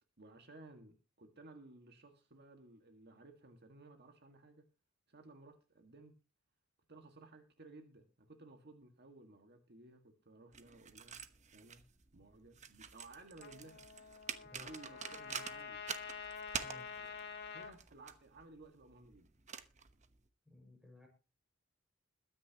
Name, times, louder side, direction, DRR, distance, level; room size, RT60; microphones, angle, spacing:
voice 1, 0.2-4.7 5.1-6.2 6.9-11.2 11.5-11.8 12.1-13.9 14.3-16.1 16.9-19.3, right 2 dB, 50° right, 5 dB, 1.8 m, -57 dB
sound 1, 10.5-20.3, right 7 dB, 35° right, 1.0 m, -48 dB
Trumpet, 13.4-17.7, left 5 dB, 55° left, 2.0 m, -48 dB
voice 2, 20.5-21.1, left 1 dB, 5° right, 2 dB, 5.6 m, -57 dB
21.5 x 9.8 x 2.9 m, 0.31 s
head